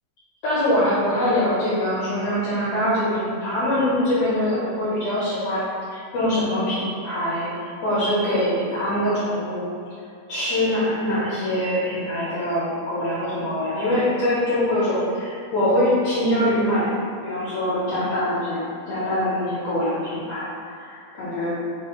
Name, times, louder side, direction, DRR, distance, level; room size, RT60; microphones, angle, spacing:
voice 1, 0.4-5.6 5.9-9.7 10.3-16.9 17.2-20.5 20.8-21.5, left 1 dB, 65° left, -11 dB, 1.8 m, -23 dB
5.1 x 2.2 x 4.2 m, 2.3 s
omnidirectional pair, 3.6 m